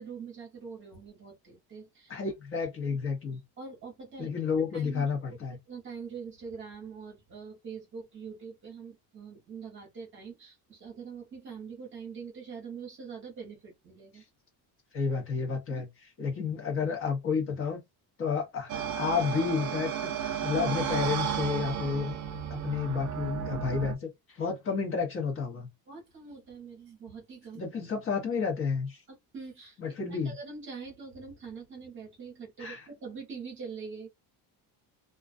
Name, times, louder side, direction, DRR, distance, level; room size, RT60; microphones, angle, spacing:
voice 1, 0.0-2.2 3.6-4.3 4.7-5.1 5.7-14.2 15.7-15.8 25.9-27.6 29.3-29.8 30.1-34.1, right 5 dB, 30° right, 1.0 m, -44 dB
voice 2, 2.1-3.4 4.2-5.6 14.9-15.9 16.2-17.8 18.2-18.7 19.0-22.1 22.5-25.7 27.5-29.0 29.8-30.3 32.6-32.9, left 5 dB, 30° left, 1.0 m, -31 dB
sound 1, 18.7-23.9, right 8 dB, 45° right, 0.6 m, -33 dB
2.3 x 2.3 x 2.4 m
cardioid pair, 175°, 42 cm